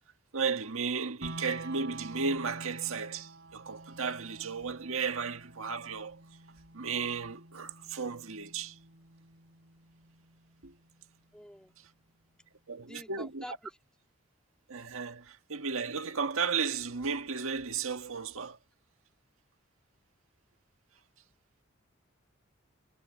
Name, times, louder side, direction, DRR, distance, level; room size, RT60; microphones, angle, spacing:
voice 1, 0.3-6.2 6.7-8.8 10.6-10.7 12.7-13.4 14.7-18.6, right 5 dB, 80° right, 1.6 m, -34 dB
sound 1, 1.2-11.2, right 2 dB, 55° right, 6.7 m, -49 dB
voice 2, 11.3-11.7 12.8-13.8, equal, 5° left, 2.1 m, -47 dB
head